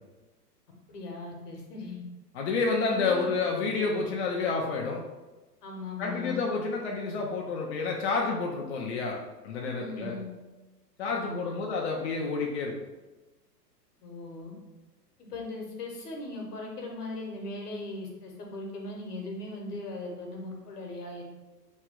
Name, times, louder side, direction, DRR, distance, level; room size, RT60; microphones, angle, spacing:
voice 1, 0.9-2.0 2.9-3.3 5.6-6.4 9.7-10.3 11.1-11.6 14.0-14.5 15.2-21.2, left 2 dB, 70° left, 0 dB, 1.1 m, -39 dB
voice 2, 2.3-5.0 6.0-9.2 9.4-10.2 11.0-12.7, left 4 dB, 45° left, 0 dB, 0.5 m, -29 dB
3.0 x 2.3 x 3.6 m, 1.1 s
hypercardioid pair, 120°, 49 cm